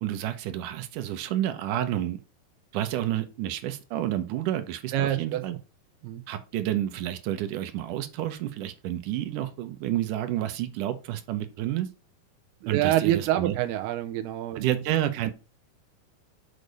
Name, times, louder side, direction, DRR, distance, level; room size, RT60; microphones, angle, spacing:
voice 1, 0.0-2.2 2.7-5.6 6.3-11.9 12.7-13.6 14.6-15.3, right 12 dB, 70° right, 2.1 m, -30 dB
voice 2, 4.9-5.4 6.0-6.2 12.6-14.8, right 13 dB, 90° right, 2.7 m, -26 dB
6.5 x 5.3 x 5.2 m
omnidirectional pair, 4.4 m